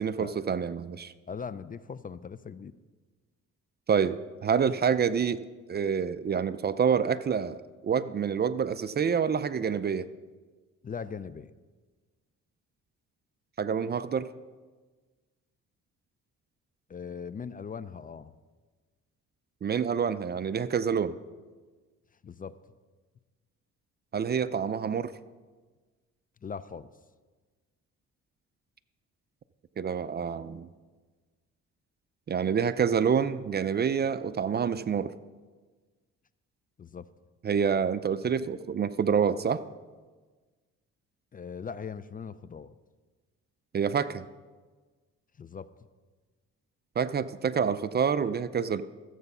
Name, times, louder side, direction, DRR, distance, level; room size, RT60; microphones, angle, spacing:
voice 1, 0.0-1.1 3.9-4.2 4.4-5.4 5.7-10.0 13.6-14.3 19.6-21.2 24.1-25.1 29.8-30.7 32.3-35.1 37.4-39.6 43.7-44.3 47.0-48.8, right 7 dB, 35° right, 14 dB, 0.4 m, -27 dB
voice 2, 1.3-2.7 10.8-11.5 16.9-18.4 22.2-22.6 26.4-26.9 36.8-37.1 41.3-42.8 45.4-45.7, left 6 dB, 30° left, 15 dB, 0.4 m, -40 dB
14.0 x 8.0 x 5.5 m, 1.4 s
cardioid pair, 90°, 30 cm